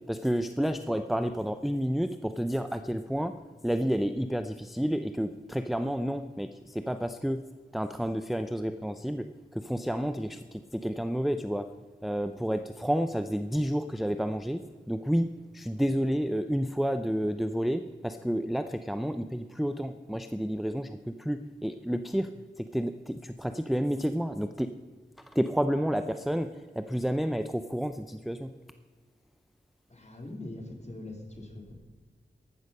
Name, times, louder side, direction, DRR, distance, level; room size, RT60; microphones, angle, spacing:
voice 1, 0.1-3.3 3.6-7.4 7.7-9.2 9.5-11.7 12.0-15.3 15.5-22.3 22.6-24.7 25.3-28.5, equal, ahead, 9 dB, 0.5 m, -30 dB
voice 2, 29.9-31.7, left 1 dB, 35° left, 1 dB, 2.9 m, -43 dB
14.5 x 12.0 x 5.5 m, 1.5 s
wide cardioid pair, 85°, 19 cm